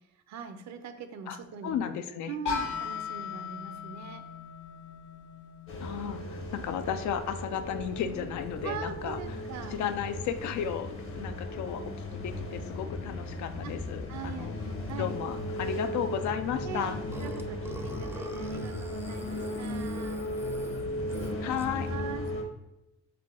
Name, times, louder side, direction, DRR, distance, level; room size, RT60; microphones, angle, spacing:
voice 1, 0.1-1.8 2.3-4.2 8.6-9.8 13.6-13.7 14.1-15.2 16.6-20.2 21.0-22.3, right 7 dB, 65° right, 9 dB, 0.6 m, -42 dB
voice 2, 1.6-2.3 5.8-9.2 9.7-14.6 15.0-17.0 21.4-21.9, left 8 dB, 70° left, 9 dB, 0.5 m, -34 dB
sound 1, 2.5-8.3, left 7 dB, 85° left, 1.1 m, -39 dB
sound 2, 5.7-22.4, left 1 dB, 45° left, 0.9 m, -36 dB
Burping eructation, 17.1-21.9, right 2 dB, 10° right, 0.3 m, -44 dB
3.7 x 3.4 x 3.6 m, 0.93 s
cardioid pair, 90°, 30 cm